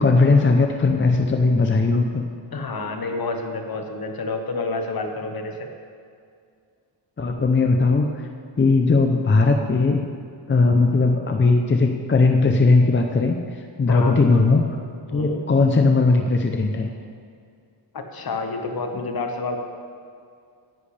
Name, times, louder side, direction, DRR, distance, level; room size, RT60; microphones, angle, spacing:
voice 1, 0.0-2.2 7.2-8.1 8.6-10.0 10.5-14.6 15.1-16.9, left 3 dB, 25° left, 4 dB, 0.6 m, -18 dB
voice 2, 2.5-5.7 13.9-14.2 15.1-15.4 17.9-19.6, left 3 dB, 50° left, 4 dB, 1.3 m, -29 dB
17.0 x 10.5 x 3.3 m, 2.3 s
wide cardioid pair, 160°, 46 cm